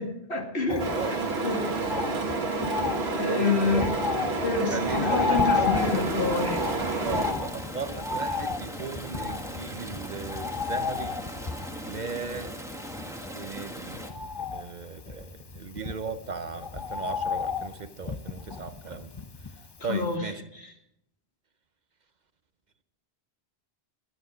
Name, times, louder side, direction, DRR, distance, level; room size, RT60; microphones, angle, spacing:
voice 1, 0.0-1.2 1.4-1.6 3.1-3.9 4.4-6.6 19.9-20.2 20.5-20.7, left 3 dB, 80° left, 2 dB, 2.6 m, -28 dB
Bird, 0.7-19.8 20.1-20.2, left 5 dB, 30° left, 0.6 m, -33 dB
sound 1, 0.8-7.3, right 3 dB, 75° right, 1.9 m, -29 dB
voice 2, 0.9-1.4 1.7-2.3 3.3-3.9 4.7-5.8 7.0-11.2 11.8-12.6 13.3-14.0 14.4-19.1 19.8-20.4, right 4 dB, 50° right, 11 dB, 0.8 m, -36 dB
sound 2, 5.7-14.1, equal, 5° right, 1.5 m, -40 dB
17.0 x 12.0 x 5.0 m, 0.77 s
omnidirectional pair, 1.1 m